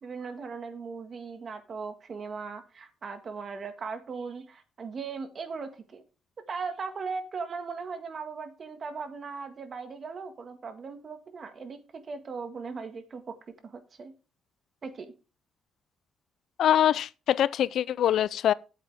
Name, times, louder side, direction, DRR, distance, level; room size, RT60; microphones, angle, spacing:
voice 1, 0.0-6.0 6.5-13.3 13.6-14.1 14.8-15.1, right 5 dB, 45° right, 1.8 m, -38 dB
voice 2, 16.6-18.5, left 10 dB, 70° left, 0.4 m, -24 dB
8.6 x 8.1 x 3.5 m
cardioid pair, 90°, 0 cm